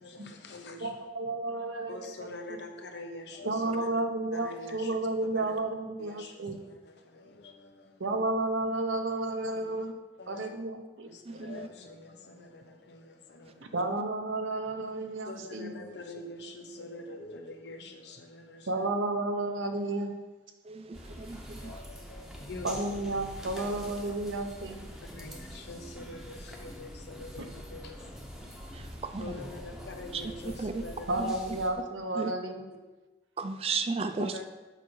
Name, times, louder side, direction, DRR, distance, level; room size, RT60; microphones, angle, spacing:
voice 1, 0.0-0.9 1.9-3.9 4.3-5.0 5.3-5.5 6.0-8.2 9.5-9.6 10.2-10.5 11.1-13.7 15.2-18.9 21.1-22.9 23.6-23.7 25.0-31.2 34.2-34.4, left 2 dB, 65° left, 4 dB, 0.9 m, -45 dB
voice 2, 0.8-2.1 3.4-6.6 8.0-9.9 10.3-11.4 13.7-15.7 18.7-20.1 22.6-24.9 31.1-32.7, right 2 dB, 85° right, 5 dB, 0.9 m, -32 dB
voice 3, 11.3-11.7 20.6-21.7 28.7-29.3 30.1-30.2 30.6-30.7 31.2-31.3 32.2-32.3 33.4-34.3, right 4 dB, 30° right, 9 dB, 0.4 m, -34 dB
sound 1, 20.9-31.7, equal, ahead, 0.8 m, -45 dB
6.8 x 6.0 x 4.7 m, 1.2 s
head